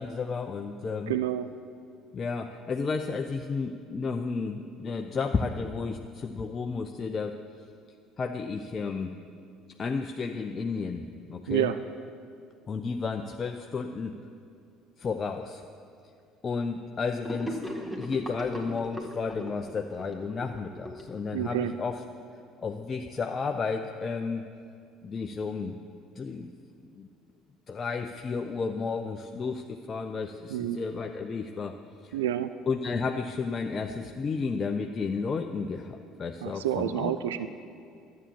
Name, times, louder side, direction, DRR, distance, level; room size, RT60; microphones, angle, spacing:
voice 1, 0.0-1.1 2.1-7.4 8.2-9.2 9.8-11.7 12.7-14.2 15.0-15.6 16.4-17.6 17.9-22.0 22.6-24.5 25.0-25.8 26.2-26.5 26.9-27.1 27.7-31.8 32.0-32.2 32.7-37.2, left 4 dB, 35° left, 5 dB, 0.6 m, -32 dB
voice 2, 1.1-1.5 11.5-11.8 21.3-21.7 30.5-30.8 32.1-32.5 36.4-37.5, right 12 dB, 75° right, 12 dB, 0.3 m, -28 dB
Gurgling / Sink (filling or washing), 17.2-21.7, equal, ahead, 1.9 m, -38 dB
12.5 x 8.5 x 7.3 m, 2.4 s
figure-of-eight pair, 60°, 0 cm